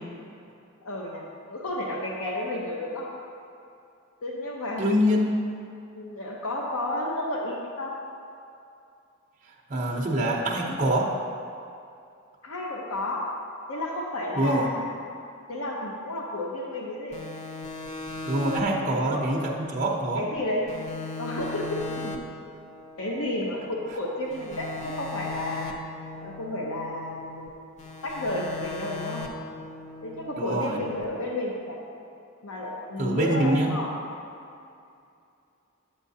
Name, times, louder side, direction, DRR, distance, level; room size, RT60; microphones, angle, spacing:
voice 1, 0.8-3.1 4.2-4.9 6.0-8.0 12.4-13.3 13.7-14.8 15.5-17.2 18.6-19.4 20.2-20.9 21.2-22.2 23.0-25.7 26.2-27.5 28.0-29.3 30.0-31.8 32.4-33.9, left 1 dB, 75° left, -2 dB, 0.8 m, -32 dB
voice 2, 4.8-5.3 9.7-11.1 14.4-14.7 18.3-20.2 30.4-30.8 33.0-33.7, right 1 dB, 35° right, -2 dB, 0.7 m, -25 dB
sound 1, 17.1-20.4 20.7-23.9 24.3-27.5 27.8-31.0, left 3 dB, 30° left, 0.6 m, -39 dB
8.8 x 7.4 x 2.7 m, 2.6 s
head